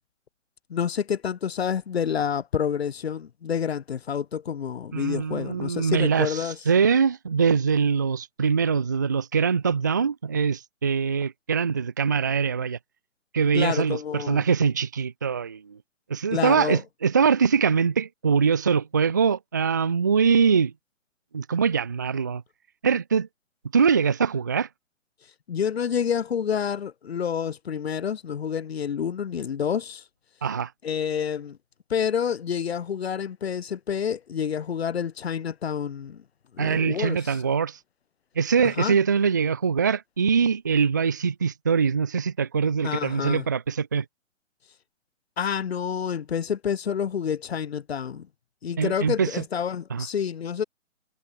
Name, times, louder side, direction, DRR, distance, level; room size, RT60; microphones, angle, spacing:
voice 1, 0.7-6.6 13.5-14.4 16.3-16.8 25.5-30.0 30.8-31.6 31.9-36.2 36.6-37.4 38.6-39.0 42.8-43.5 45.4-48.3 48.6-50.6, left 7 dB, 50° left, 6.0 m, -28 dB
voice 2, 4.9-12.8 13.3-15.8 16.1-20.7 21.3-22.4 22.8-23.3 23.7-24.7 30.4-30.7 36.6-37.8 38.4-44.0 48.8-49.4 49.9-50.1, right 6 dB, 15° right, 0.5 m, -23 dB
hypercardioid pair, 155°, 39 cm